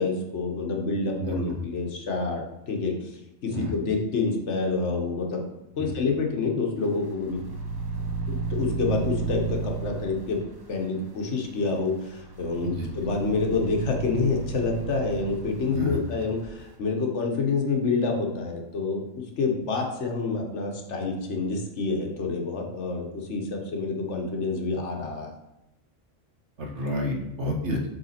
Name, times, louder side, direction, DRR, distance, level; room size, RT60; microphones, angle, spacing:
voice 1, 0.0-5.4 5.8-7.4 8.3-10.4 10.7-19.0 19.4-25.3, left 4 dB, 70° left, 2 dB, 1.3 m, -28 dB
voice 2, 1.2-1.5 3.5-3.7 5.8-5.9 12.6-12.9 15.7-16.0 26.6-27.8, equal, 65° right, 0 dB, 1.5 m, -29 dB
sound 1, 7.1-10.8 12.1-16.5, right 5 dB, 25° right, 0.6 m, -33 dB
7.9 x 3.5 x 4.2 m, 0.89 s
omnidirectional pair, 1.3 m